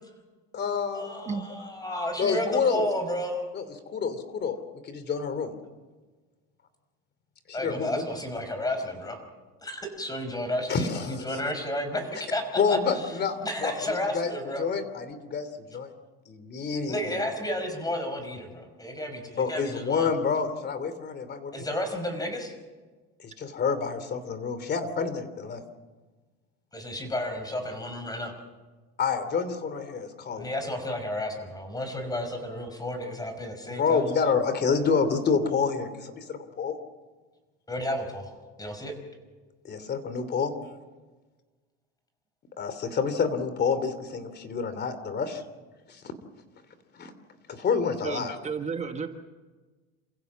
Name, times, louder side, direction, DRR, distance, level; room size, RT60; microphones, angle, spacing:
voice 1, 0.5-1.2 2.2-2.9 3.5-4.6 4.8-5.5 7.5-8.0 10.7-11.4 12.6-14.3 14.6-15.9 16.3-17.3 19.3-21.7 23.2-25.6 29.0-30.5 33.8-36.7 39.6-40.5 42.6-45.4 45.9-46.0 46.9-47.1 47.5-48.3, left 5 dB, 30° left, 12 dB, 2.9 m, -28 dB
voice 2, 1.1-3.4 7.5-9.2 9.6-12.4 12.7-12.8 13.4-14.6 16.9-20.1 21.5-22.5 26.7-28.3 30.4-34.0 37.7-38.3 38.6-38.9, left 1 dB, 10° left, 7 dB, 5.5 m, -32 dB
voice 3, 48.0-49.1, right 5 dB, 20° right, 6 dB, 1.4 m, -32 dB
28.5 x 16.0 x 7.4 m, 1.3 s
supercardioid pair, 120°, 31 cm